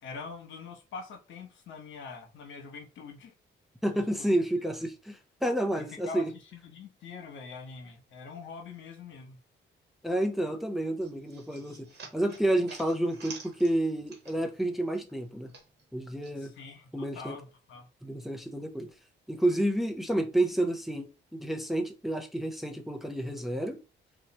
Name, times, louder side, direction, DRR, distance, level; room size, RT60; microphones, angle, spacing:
voice 1, 0.0-3.3 3.9-4.0 5.8-6.2 6.5-9.4 16.4-17.9, left 4 dB, 75° left, 1.1 m, -44 dB
voice 2, 3.8-6.3 10.0-11.9 12.1-15.5 15.9-16.5 16.9-17.4 18.0-18.9 19.3-23.8, right 1 dB, ahead, 0.7 m, -30 dB
sound 1, 11.0-14.6 14.9-16.3, right 4 dB, 60° right, 1.2 m, -49 dB
3.1 x 2.3 x 4.1 m
cardioid pair, 90°, 20 cm